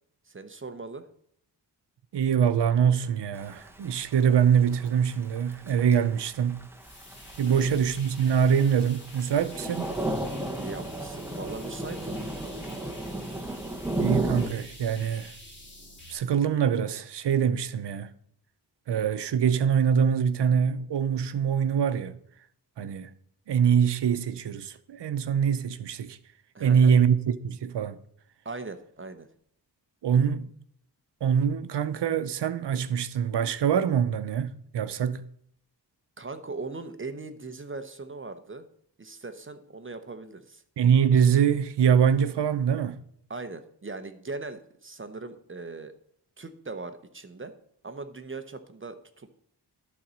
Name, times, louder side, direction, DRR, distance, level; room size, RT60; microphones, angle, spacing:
voice 1, 0.3-1.1 7.5-7.7 10.6-12.3 26.5-26.9 28.4-29.3 36.2-38.7 39.0-40.6 43.3-45.9 46.4-47.5 47.8-49.3, right 3 dB, 30° right, 0.7 m, -39 dB
voice 2, 2.1-6.6 7.4-9.9 14.0-15.3 16.1-18.1 18.9-22.1 22.8-23.1 23.5-26.2 26.6-27.2 27.4-28.0 30.0-30.5 31.2-35.2 40.8-43.0, right 7 dB, 80° right, 0.7 m, -24 dB
Thunder / Rain, 3.3-14.5, right 1 dB, 5° right, 1.0 m, -34 dB
sound 1, 6.8-16.1, left 1 dB, 25° left, 2.7 m, -47 dB
12.0 x 4.1 x 6.1 m
wide cardioid pair, 105°, 41 cm